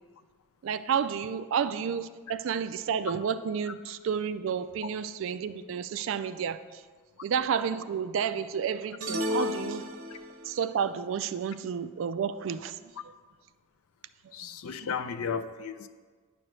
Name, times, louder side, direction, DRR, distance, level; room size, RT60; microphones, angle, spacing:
voice 1, 0.6-6.8 7.2-9.9 10.4-12.9, right 7 dB, 60° right, 13 dB, 0.3 m, -31 dB
sound 1, 9.0-10.6, left 1 dB, 85° right, 0.7 m, -32 dB
voice 2, 14.3-15.9, left 6 dB, 80° left, 10 dB, 0.4 m, -34 dB
9.8 x 6.1 x 3.2 m, 1.5 s
head